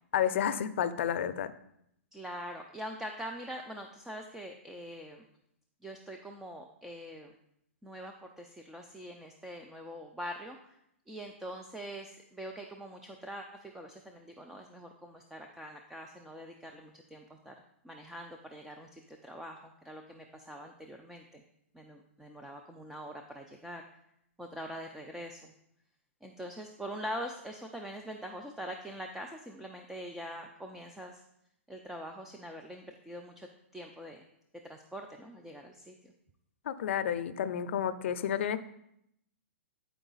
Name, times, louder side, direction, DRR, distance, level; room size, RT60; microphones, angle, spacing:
voice 1, 0.1-1.5 36.7-38.6, left 9 dB, 60° left, 12 dB, 0.5 m, -30 dB
voice 2, 2.1-5.3 5.8-7.4 7.8-10.8 11.1-17.5 17.8-21.4 21.7-23.9 24.4-25.5 26.2-31.2 31.7-33.5 33.7-34.2 34.6-36.1, equal, 5° right, 3 dB, 0.4 m, -43 dB
8.9 x 4.6 x 3.9 m, 0.76 s
hypercardioid pair, 150°, 7 cm